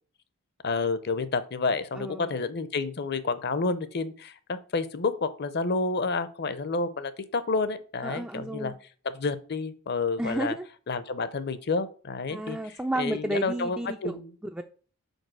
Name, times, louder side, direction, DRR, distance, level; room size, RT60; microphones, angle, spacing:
voice 1, 0.6-8.7 9.0-10.5 10.9-12.6 13.0-14.3, left 3 dB, 50° left, 14 dB, 0.6 m, -29 dB
voice 2, 1.9-2.3 8.0-8.8 10.2-10.7 12.3-14.2 14.5-14.6, right 1 dB, 5° right, 5 dB, 0.3 m, -32 dB
5.3 x 4.6 x 6.1 m, 0.41 s
head